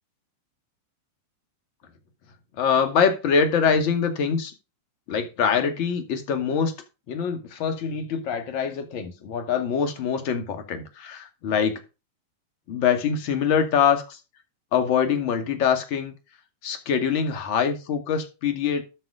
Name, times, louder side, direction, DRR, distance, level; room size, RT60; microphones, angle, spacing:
voice 1, 2.6-4.5 5.1-6.7 7.1-11.8 12.7-14.2 14.7-16.1 16.6-18.8, left 6 dB, 50° left, 2.1 m, -24 dB
12.5 x 4.3 x 5.1 m
figure-of-eight pair, 90°, 0 cm